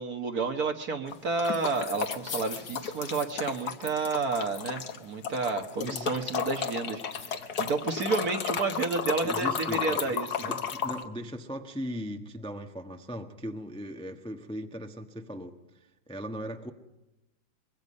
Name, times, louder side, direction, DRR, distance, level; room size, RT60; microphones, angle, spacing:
voice 1, 0.0-10.5, right 4 dB, 50° right, 1.7 m, -30 dB
sound 1, 1.1-5.0 5.2-11.0, left 7 dB, 55° left, 1.5 m, -33 dB
voice 2, 5.8-6.1 9.2-15.6 16.1-16.7, equal, 5° left, 0.9 m, -38 dB
24.5 x 22.0 x 5.4 m
omnidirectional pair, 2.3 m